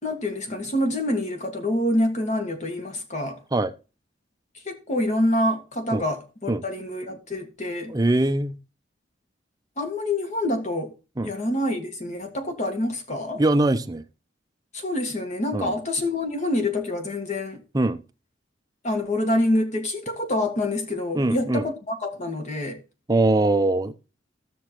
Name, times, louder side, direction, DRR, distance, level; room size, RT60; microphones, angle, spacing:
voice 1, 0.0-3.4 4.7-7.9 9.8-10.9 11.2-13.4 14.7-17.6 18.8-22.8, left 1 dB, 40° left, 1.8 m, -26 dB
voice 2, 7.9-8.6 11.2-11.3 13.3-14.0 15.5-15.7 17.7-18.0 21.1-21.6 23.1-23.9, right 2 dB, 20° right, 0.6 m, -22 dB
15.5 x 6.2 x 3.0 m
head